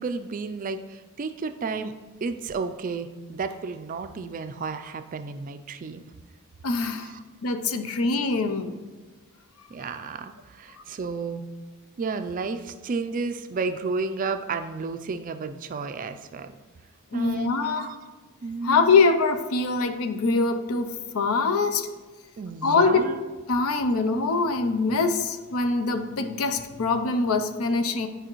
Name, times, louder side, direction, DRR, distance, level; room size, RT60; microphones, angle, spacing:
voice 1, 0.0-1.9 2.2-6.0 7.0-7.2 9.7-11.5 12.0-16.5 17.1-18.0 18.4-18.9 22.4-23.2, right 4 dB, 40° right, 9 dB, 0.3 m, -32 dB
voice 2, 6.6-7.1 7.4-8.8 17.1-17.9 18.6-21.9 22.6-23.1 23.5-28.1, left 4 dB, 75° left, 8 dB, 0.5 m, -23 dB
10.0 x 5.0 x 3.0 m, 1.3 s
head